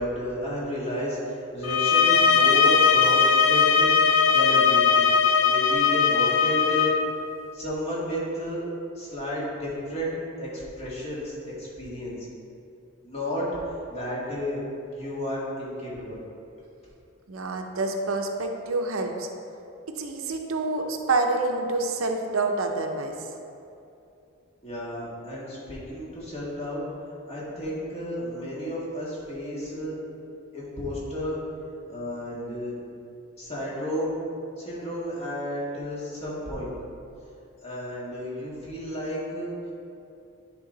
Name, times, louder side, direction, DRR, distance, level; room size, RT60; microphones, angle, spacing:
voice 1, 0.0-3.9 4.3-5.0 5.4-7.0 7.5-8.6 9.0-12.3 13.0-13.5 13.9-14.6 14.9-16.2 24.6-26.8 27.3-30.0 30.5-31.4 31.9-32.8 33.4-34.2 34.6-36.7 37.6-39.5, equal, 30° left, -7 dB, 1.7 m, -32 dB
sound 1, 1.6-7.0, left 6 dB, 65° left, 0.5 m, -19 dB
voice 2, 17.3-19.3 20.0-23.1, right 3 dB, 85° right, 3 dB, 0.7 m, -27 dB
10.0 x 3.8 x 3.9 m, 2.7 s
head